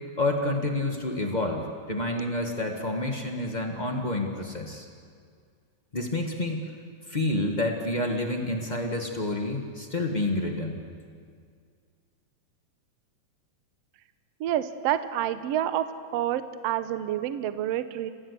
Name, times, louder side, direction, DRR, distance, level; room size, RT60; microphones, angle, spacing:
voice 1, 0.2-4.9 5.9-6.7 7.1-10.8, left 2 dB, 40° left, 2 dB, 0.6 m, -29 dB
voice 2, 14.4-15.8 16.1-18.1, right 11 dB, 70° right, 11 dB, 1.5 m, -28 dB
28.5 x 16.0 x 8.3 m, 2.1 s
omnidirectional pair, 3.9 m